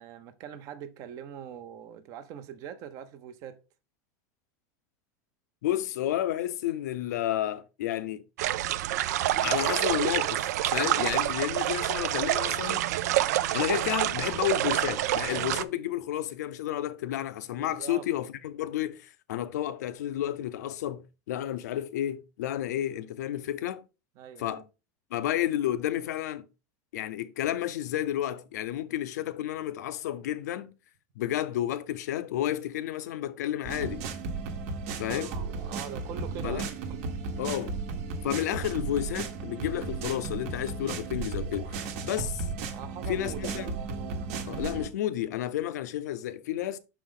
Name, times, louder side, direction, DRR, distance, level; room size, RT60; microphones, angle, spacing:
voice 1, 0.0-3.6 17.6-18.1 24.2-24.6 35.1-37.0 42.7-43.7, right 9 dB, 40° right, 0.7 m, -42 dB
voice 2, 5.6-8.2 9.4-12.9 13.5-23.8 24.4-24.6 25.1-26.5 26.9-30.7 31.2-34.0 35.0-35.3 36.4-36.7 37.4-37.8 38.2-42.5 43.1-43.7 44.5-46.8, left 12 dB, 90° left, 0.7 m, -31 dB
sound 1, 8.4-15.6, right 13 dB, 80° right, 0.4 m, -27 dB
sound 2, 33.6-44.9, right 4 dB, 60° right, 1.2 m, -35 dB
6.2 x 4.6 x 3.8 m
supercardioid pair, 160°, 9 cm